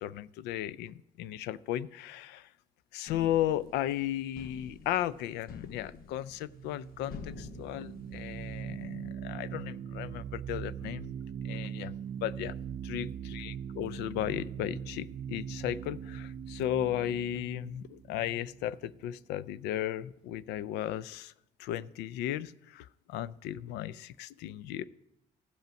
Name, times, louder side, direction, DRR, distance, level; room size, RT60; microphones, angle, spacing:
voice 1, 0.0-2.5 2.9-11.1 11.4-11.9 12.2-12.5 12.9-21.3 21.6-24.8, left 12 dB, 85° left, 18 dB, 0.4 m, -35 dB
sound 1, 3.1-8.6, left 5 dB, 60° left, 0.9 m, -49 dB
sound 2, 6.0-19.2, right 8 dB, 80° right, 0.6 m, -41 dB
15.0 x 5.4 x 5.1 m, 0.86 s
cardioid pair, 110°, 17 cm